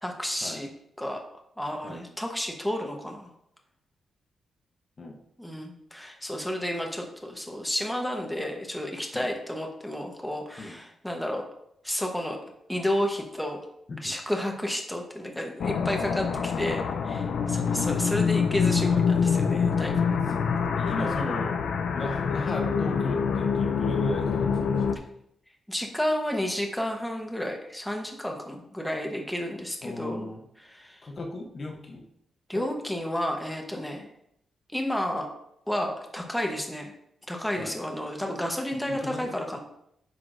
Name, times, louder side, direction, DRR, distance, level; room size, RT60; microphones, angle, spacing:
voice 1, 0.0-0.7 1.0-1.2 1.6-3.3 5.4-11.4 11.8-12.4 12.7-13.6 14.0-20.0 25.7-30.3 30.6-31.0 32.5-34.1 34.7-35.3 35.7-36.9 37.3-39.6, left 1 dB, 5° left, 2 dB, 1.0 m, -31 dB
sound 1, 15.6-24.9, left 6 dB, 65° left, 0.5 m, -26 dB
voice 2, 20.8-21.5 21.9-25.1 29.8-30.4 31.0-32.0 32.5-32.7 37.6-37.8 38.9-39.3, left 2 dB, 35° left, 2 dB, 0.8 m, -36 dB
9.3 x 5.9 x 2.5 m, 0.74 s
wide cardioid pair, 155°, 0 cm